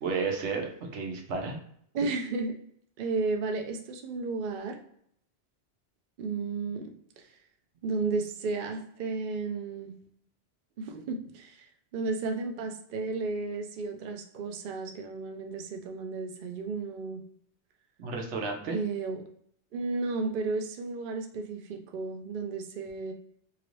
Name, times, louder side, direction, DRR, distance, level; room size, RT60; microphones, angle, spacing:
voice 1, 0.0-1.6 18.0-18.8, right 4 dB, 85° right, 2 dB, 1.0 m, -32 dB
voice 2, 1.9-2.5 3.0-4.8 6.2-7.2 7.8-9.9 10.8-11.7 11.9-17.2 18.7-19.2 19.7-23.1, right 3 dB, 60° right, 3 dB, 0.6 m, -33 dB
2.9 x 2.5 x 3.0 m, 0.67 s
omnidirectional pair, 1.1 m